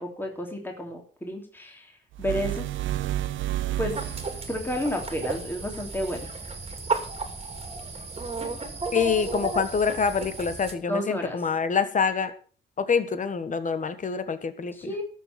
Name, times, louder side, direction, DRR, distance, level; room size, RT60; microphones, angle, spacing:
voice 1, 0.0-1.9 2.2-2.6 3.8-3.9 4.5-6.2 10.9-11.4 14.8-15.0, equal, 10° left, 2 dB, 2.9 m, -31 dB
sound 1, 2.1-4.5, right 13 dB, 75° right, 0.8 m, -30 dB
sound 2, 3.9-10.7, right 3 dB, 30° right, 2.6 m, -33 dB
voice 2, 8.9-12.3 12.8-14.9, left 6 dB, 40° left, 11 dB, 1.6 m, -26 dB
13.0 x 6.8 x 7.0 m, 0.41 s
cardioid pair, 90°, 20 cm